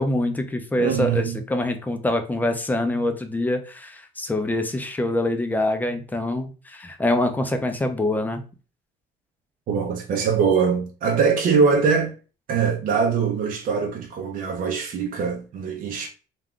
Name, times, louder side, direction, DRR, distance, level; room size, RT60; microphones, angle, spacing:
voice 1, 0.0-8.4, left 1 dB, 10° left, 0.5 m, -25 dB
voice 2, 0.8-1.4 9.7-12.1 12.5-16.1, right 5 dB, 55° right, 0.6 m, -22 dB
2.4 x 2.3 x 3.5 m
cardioid pair, 110°, 17 cm